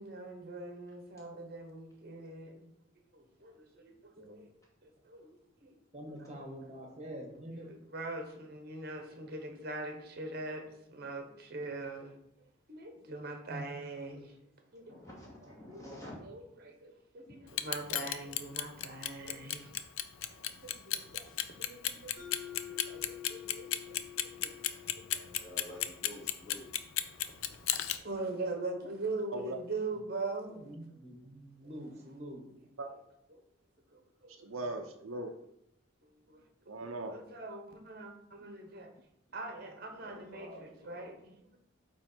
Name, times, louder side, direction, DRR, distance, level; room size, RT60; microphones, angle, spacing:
voice 1, 0.0-2.7 3.1-4.5 4.8-5.3 5.6-5.8 6.3-6.4 7.0-7.1 7.5-12.2 12.7-14.3 14.7-14.9 15.6-15.8 16.2-19.7 20.2-25.3 27.1-30.6 33.9-34.4 36.0-36.4 37.1-38.9 39.3-41.6, right 2 dB, 50° right, 4 dB, 1.1 m, -42 dB
voice 2, 5.9-7.7 30.6-32.4, equal, 35° right, 2 dB, 1.3 m, -46 dB
voice 3, 14.9-16.2 25.4-26.7 39.9-41.1, left 1 dB, 15° left, -6 dB, 2.4 m, -49 dB
Clock, 17.5-28.0, left 12 dB, 90° left, 0.5 m, -33 dB
Mallet percussion, 22.2-26.7, left 11 dB, ahead, 2.9 m, -49 dB
voice 4, 34.4-35.3 36.7-37.2, right 2 dB, 90° right, 4 dB, 0.7 m, -39 dB
8.8 x 3.2 x 4.5 m, 0.78 s
head